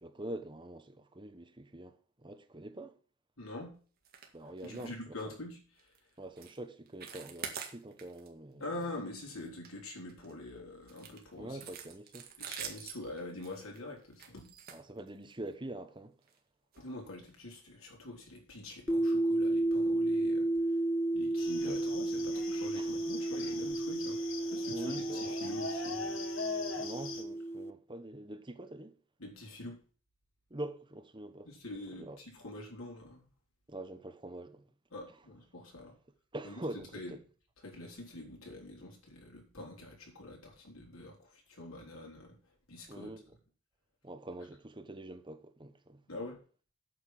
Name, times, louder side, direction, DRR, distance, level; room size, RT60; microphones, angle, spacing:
voice 1, 0.0-3.0 4.3-5.2 6.2-8.7 11.4-12.3 14.7-16.1 21.6-21.8 22.7-23.0 24.7-25.4 26.8-29.0 30.5-31.5 31.9-32.2 33.7-34.6 36.3-37.2 42.9-43.3 44.0-46.0, right 1 dB, 25° right, 1.0 m, -45 dB
voice 2, 3.4-3.8 4.6-5.6 8.6-11.6 12.4-14.5 16.8-20.5 21.1-24.2 24.5-26.2 29.2-29.8 31.5-33.3 34.9-36.0 36.4-37.1 37.6-42.4 42.7-43.1 46.1-46.4, left 2 dB, 85° left, 4.3 m, -45 dB
sound 1, 4.0-4.3 4.6-4.9 5.2-5.4 5.8-6.0 6.4-6.6 6.9-8.3 8.6-8.8 9.2-10.3 10.9-15.5 16.2-16.4 16.7-16.8 17.3-17.4, right 7 dB, 45° right, 2.1 m, -46 dB
sound 2, 18.9-27.7, right 2 dB, 10° left, 0.5 m, -32 dB
sound 3, 21.4-27.2, left 4 dB, 70° left, 2.0 m, -42 dB
8.8 x 6.7 x 7.5 m
head